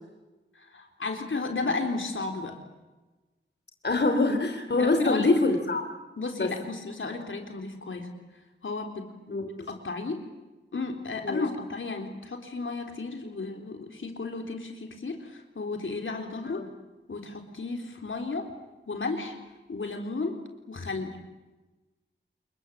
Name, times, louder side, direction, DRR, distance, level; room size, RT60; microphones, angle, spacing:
voice 1, 0.6-2.6 4.8-5.3 6.2-8.1 8.6-9.0 9.7-10.2 10.7-16.6 17.1-18.5 18.9-19.4 19.7-20.4 20.7-21.2, left 3 dB, 80° left, 4 dB, 3.9 m, -33 dB
voice 2, 3.8-5.8 6.4-6.5 9.3-9.7 11.2-11.4 16.5-16.7, left 2 dB, 60° left, 5 dB, 3.3 m, -25 dB
28.5 x 22.0 x 8.7 m, 1.1 s
wide cardioid pair, 75°, 20 cm